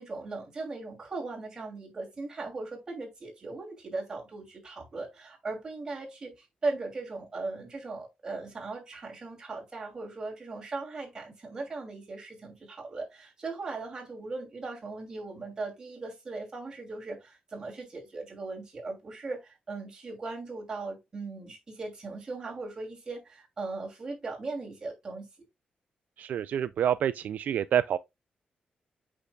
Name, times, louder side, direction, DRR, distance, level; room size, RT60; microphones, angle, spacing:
voice 1, 0.0-25.3, right 3 dB, 25° right, 3.0 m, -38 dB
voice 2, 26.2-28.0, right 9 dB, 70° right, 0.3 m, -27 dB
8.4 x 5.7 x 2.4 m
wide cardioid pair, 175°, 3 cm